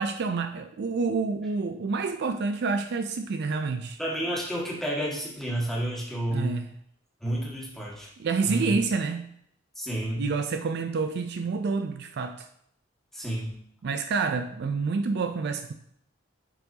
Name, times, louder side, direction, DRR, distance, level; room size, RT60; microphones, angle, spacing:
voice 1, 0.0-4.0 6.3-6.7 8.2-9.3 10.2-12.5 13.8-15.7, right 4 dB, 55° right, 8 dB, 0.4 m, -28 dB
voice 2, 4.0-6.6 7.2-8.1 8.4-8.8 9.7-10.2 13.1-13.5, right 1 dB, ahead, -5 dB, 1.7 m, -30 dB
10.0 x 4.5 x 2.8 m, 0.71 s
head